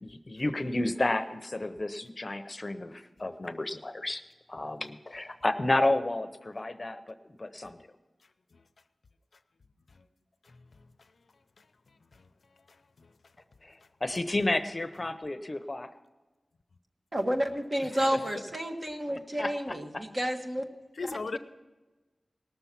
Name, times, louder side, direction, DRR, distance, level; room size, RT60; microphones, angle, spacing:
voice 1, 0.0-4.2 4.5-7.8 14.0-15.9 19.4-19.7, left 2 dB, 35° left, 10 dB, 0.7 m, -31 dB
voice 2, 17.1-20.6 21.3-21.4, equal, 40° right, 3 dB, 1.5 m, -30 dB
voice 3, 21.0-21.4, left 4 dB, 75° left, 11 dB, 0.6 m, -36 dB
18.5 x 7.0 x 5.9 m, 1.2 s
wide cardioid pair, 75°, 0 cm